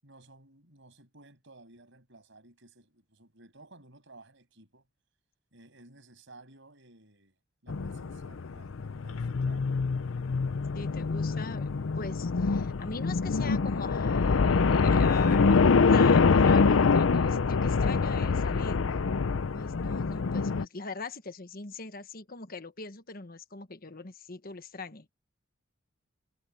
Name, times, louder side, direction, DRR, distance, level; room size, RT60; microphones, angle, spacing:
voice 1, 0.0-4.9 5.5-7.4 7.6-10.1 15.1-15.8, right 2 dB, 65° right, 7.1 m, -55 dB
sound 1, 7.7-20.7, left 4 dB, 75° left, 0.6 m, -25 dB
voice 2, 10.7-19.0 19.5-25.1, left 4 dB, 45° left, 1.4 m, -42 dB
head